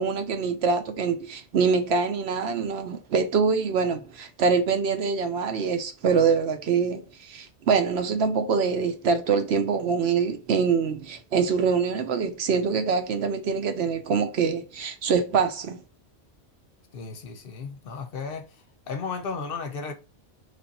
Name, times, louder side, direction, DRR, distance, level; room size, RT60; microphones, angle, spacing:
voice 1, 0.0-15.8, right 5 dB, 70° right, 0.9 m, -24 dB
voice 2, 16.9-18.5 18.9-19.9, left 5 dB, 60° left, 0.7 m, -34 dB
3.4 x 2.5 x 4.0 m
omnidirectional pair, 1.2 m